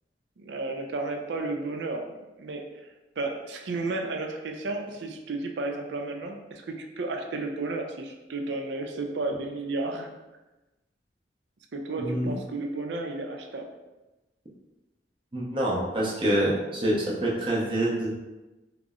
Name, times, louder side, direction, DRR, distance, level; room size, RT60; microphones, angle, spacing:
voice 1, 0.4-2.6 3.2-10.1 11.7-13.7, right 2 dB, 80° right, 3 dB, 0.5 m, -33 dB
voice 2, 12.0-12.3 15.3-18.1, right 1 dB, 30° right, -4 dB, 0.6 m, -26 dB
3.8 x 2.0 x 3.6 m, 1.1 s
head